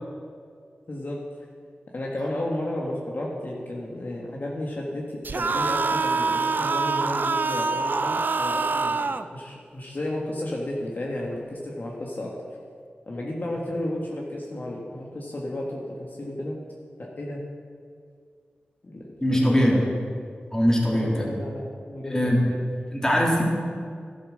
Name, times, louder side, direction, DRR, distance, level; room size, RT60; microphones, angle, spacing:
voice 1, 0.9-1.2 1.9-12.3 13.1-16.6 17.0-17.4 18.8-19.0 19.3-19.9 20.9-22.6, left 1 dB, 50° left, -2 dB, 1.6 m, -33 dB
sound 1, 5.2-9.3, right 4 dB, 55° right, 0.4 m, -25 dB
voice 2, 19.2-19.8 20.5-21.3 22.0-22.4 22.9-23.4, equal, 15° left, -2 dB, 2.8 m, -21 dB
12.0 x 7.5 x 6.5 m, 2.1 s
cardioid pair, 55°, 4 cm